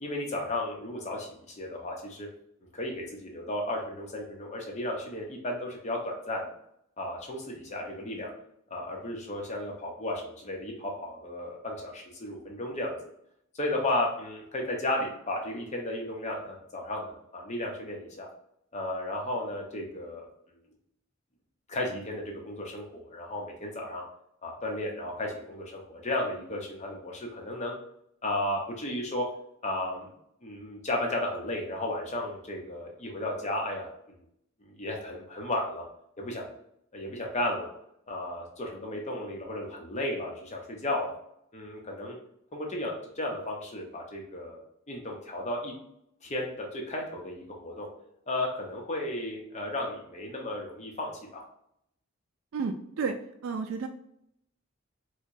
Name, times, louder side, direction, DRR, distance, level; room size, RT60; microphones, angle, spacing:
voice 1, 0.0-2.3 2.7-6.5 7.0-8.3 8.7-13.0 13.5-18.3 18.7-20.3 21.7-24.0 24.4-27.7 28.2-29.3 29.6-30.1 30.4-34.2 34.6-35.9 36.2-36.4 36.9-37.7 38.1-41.1 41.5-42.2 42.5-45.7 46.2-47.9 48.3-51.4, left 1 dB, 35° left, 0 dB, 0.7 m, -34 dB
voice 2, 52.5-53.2 53.4-53.9, right 5 dB, 75° right, 5 dB, 0.3 m, -31 dB
4.6 x 2.2 x 2.6 m, 0.75 s
head